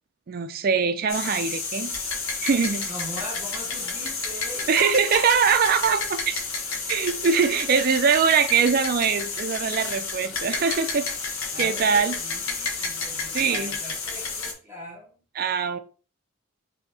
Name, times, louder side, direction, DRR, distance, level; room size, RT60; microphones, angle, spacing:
voice 1, 0.3-2.0 2.4-2.9 4.7-6.4 6.9-11.1 11.6-12.1 13.3-13.7 15.4-15.8, right 6 dB, 45° right, 0.4 m, -22 dB
sound 1, 1.1-14.5, left 4 dB, 80° left, 1.0 m, -31 dB
voice 2, 2.9-5.2 11.5-15.1, equal, 15° right, 1.8 m, -40 dB
5.9 x 2.8 x 2.7 m
head